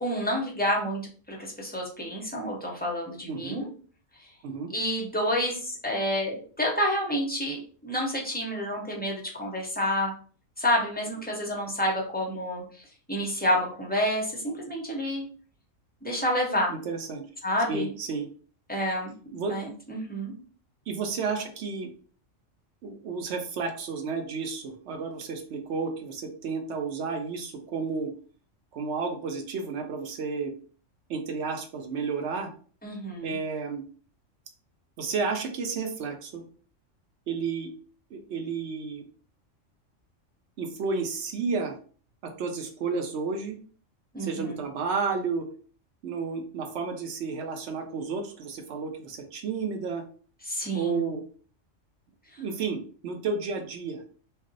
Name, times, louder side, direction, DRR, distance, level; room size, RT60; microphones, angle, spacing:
voice 1, 0.0-1.0 1.3-3.7 4.7-10.1 10.6-12.8 13.1-15.3 16.0-16.7 17.4-17.9 18.7-19.1 19.5-20.3 32.8-33.4 44.1-44.6 50.4-51.1, equal, 15° left, -2 dB, 0.4 m, -29 dB
voice 2, 3.3-3.6 4.4-4.7 16.7-17.2 17.7-18.3 19.3-19.5 20.9-21.9 22.8-28.1 28.7-30.5 31.1-32.5 33.2-33.8 35.0-36.4 37.3-37.7 38.1-39.0 40.6-41.8 42.2-43.6 44.2-45.5 46.0-50.0 50.7-51.2 52.4-54.0, right 5 dB, 70° right, 5 dB, 0.8 m, -31 dB
2.5 x 2.0 x 3.8 m, 0.42 s
omnidirectional pair, 1.3 m